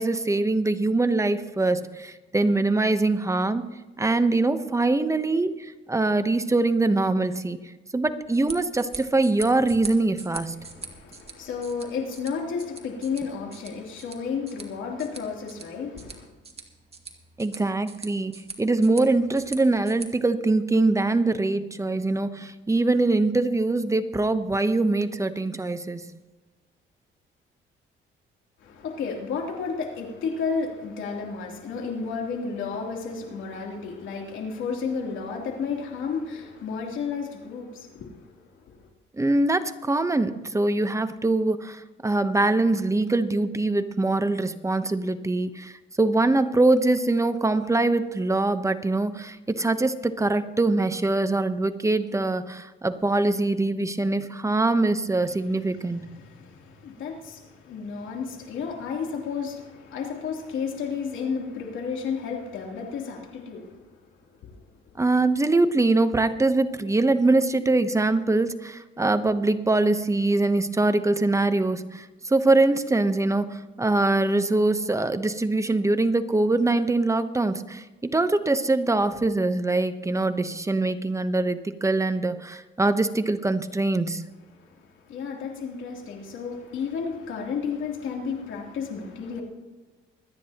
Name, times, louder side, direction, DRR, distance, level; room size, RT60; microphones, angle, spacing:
voice 1, 0.0-3.6 4.0-7.6 7.9-10.6 17.4-26.0 39.1-56.1 65.0-84.2, right 2 dB, 15° right, 0.9 m, -23 dB
sound 1, 8.2-20.1, right 4 dB, 30° right, 2.1 m, -43 dB
voice 2, 10.6-16.3 28.6-38.9 55.4-63.9 64.4-64.6 84.6-89.4, left 5 dB, 75° left, 3.2 m, -32 dB
25.5 x 9.9 x 3.0 m
cardioid pair, 90°, 20 cm